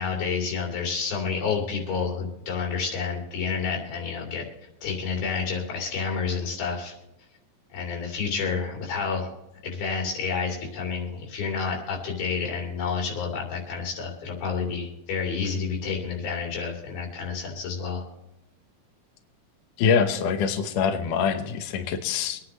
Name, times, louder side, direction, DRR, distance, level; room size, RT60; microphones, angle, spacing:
voice 1, 0.0-4.4 4.8-6.9 7.7-9.3 9.6-18.0, left 5 dB, 90° left, -1 dB, 4.8 m, -29 dB
voice 2, 19.8-22.4, left 6 dB, 70° left, 6 dB, 2.4 m, -24 dB
25.0 x 9.8 x 3.1 m, 0.93 s
omnidirectional pair, 4.2 m